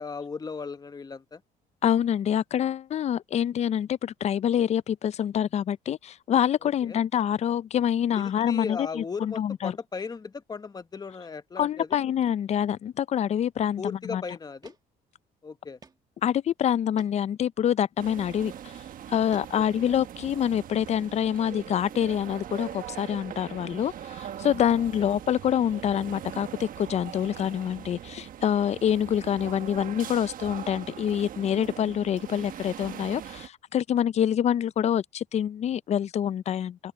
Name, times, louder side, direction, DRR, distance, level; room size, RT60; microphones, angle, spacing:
voice 1, 0.0-1.4 6.8-7.0 8.2-12.1 13.8-14.8 15.4-15.8 19.5-19.9 24.9-25.1, left 5 dB, 25° left, 1.0 m, -37 dB
voice 2, 1.8-9.7 11.6-14.2 16.2-18.5 19.1-36.8, left 9 dB, 40° left, 0.4 m, -26 dB
sound 1, 14.0-14.1 14.6-14.8 15.1-15.2 15.8-16.0 16.4-16.5 17.0-17.1 18.3-18.4 19.0-19.8, right 4 dB, 25° right, 1.7 m, -51 dB
sound 2, 18.0-33.5, right 10 dB, 55° right, 1.2 m, -41 dB
open air
cardioid pair, 110°, 17 cm